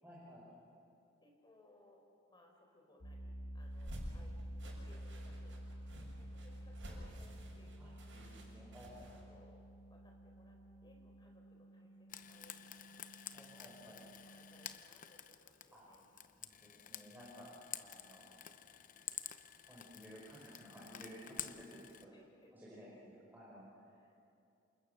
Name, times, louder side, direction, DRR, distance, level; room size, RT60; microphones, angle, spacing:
voice 1, 0.0-0.4 7.8-7.9 8.1-9.1 13.3-14.0 15.7-15.8 16.4-17.5 17.8-18.3 19.7-22.1 22.5-23.6, equal, 10° right, -7 dB, 5.1 m, -55 dB
voice 2, 1.2-2.0 2.3-5.6 5.9-8.4 9.2-9.6 9.9-12.6 13.5-16.1 22.1-22.5 23.9-24.2, left 1 dB, 25° left, 1 dB, 4.5 m, -66 dB
sound 1, 3.0-14.8, right 1 dB, 90° left, 1.6 m, -50 dB
sound 2, 3.6-9.2, equal, 75° right, 6.9 m, -51 dB
Frying (food), 12.1-22.0, left 10 dB, 45° left, 0.8 m, -50 dB
28.5 x 27.5 x 6.7 m, 2.7 s
head